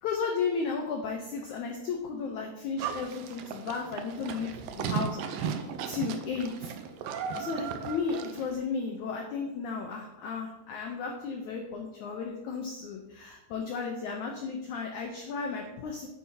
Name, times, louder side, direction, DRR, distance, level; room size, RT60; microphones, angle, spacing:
voice 1, 0.0-5.5 5.8-6.5 7.4-16.1, left 5 dB, 85° left, 2 dB, 1.7 m, -34 dB
Livestock farm animals working animals, 2.8-8.6, right 7 dB, 80° right, 2.1 m, -36 dB
9.6 x 9.4 x 2.9 m, 0.91 s
omnidirectional pair, 4.6 m